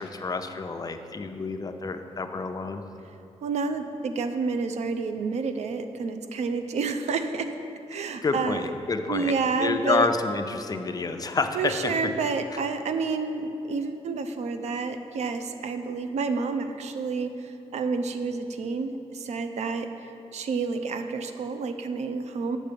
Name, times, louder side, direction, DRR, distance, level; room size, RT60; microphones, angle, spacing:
voice 1, 0.0-2.8 8.2-9.3 9.6-11.9, left 4 dB, 35° left, 7 dB, 0.6 m, -28 dB
voice 2, 3.4-7.5 7.9-8.7 9.1-10.1 11.5-22.6, right 4 dB, 80° right, 8 dB, 0.6 m, -29 dB
8.3 x 6.6 x 5.2 m, 2.9 s
cardioid pair, 85°, 11 cm